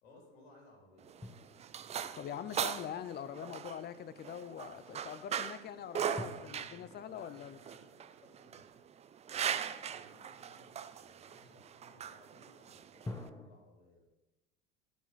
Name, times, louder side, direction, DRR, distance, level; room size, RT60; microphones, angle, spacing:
voice 1, 0.0-1.4 1.9-2.6 7.1-8.8 9.3-14.0, left 1 dB, 70° left, -1 dB, 3.4 m, -62 dB
sound 1, 1.0-13.3, right 8 dB, 20° right, 0.4 m, -40 dB
sound 2, 1.2-3.2 6.2-9.4 13.0-13.5, left 2 dB, 10° left, 1.0 m, -49 dB
voice 2, 2.2-7.6, left 9 dB, 30° left, 13 dB, 0.7 m, -43 dB
13.0 x 5.5 x 4.1 m, 1.0 s
hypercardioid pair, 75°, 31 cm